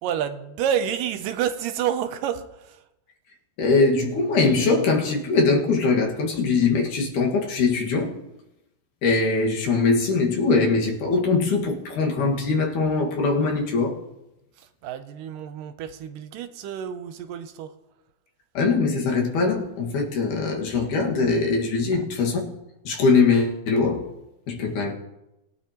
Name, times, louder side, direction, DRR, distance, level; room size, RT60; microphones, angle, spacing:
voice 1, 0.0-2.8 14.6-17.7 21.9-22.0, right 9 dB, 80° right, 2.3 m, -29 dB
voice 2, 3.6-8.2 9.0-14.0 18.5-22.5 22.8-24.1 24.5-24.9, left 4 dB, 65° left, 3.2 m, -22 dB
21.0 x 9.7 x 2.9 m
omnidirectional pair, 4.0 m